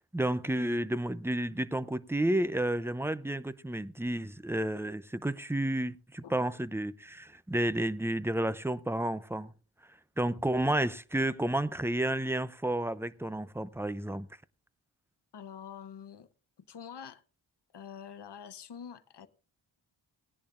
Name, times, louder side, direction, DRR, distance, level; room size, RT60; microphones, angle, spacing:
voice 1, 0.1-9.5 10.2-14.3, right 1 dB, 5° right, 0.5 m, -31 dB
voice 2, 15.3-16.3 16.7-17.2 17.7-19.3, left 7 dB, 55° left, 0.9 m, -46 dB
19.0 x 10.5 x 2.5 m
cardioid pair, 65°, 49 cm